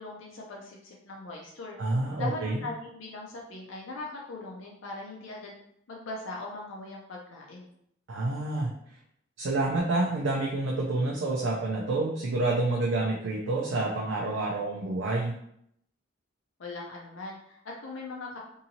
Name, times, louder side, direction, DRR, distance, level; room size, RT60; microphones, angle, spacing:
voice 1, 0.0-1.8 2.2-5.5 5.9-7.7 16.6-18.4, left 2 dB, 90° left, -2 dB, 0.5 m, -40 dB
voice 2, 1.8-2.6 8.1-8.7 9.4-15.4, right 2 dB, 75° right, -2 dB, 0.5 m, -28 dB
2.7 x 2.7 x 2.8 m, 0.72 s
head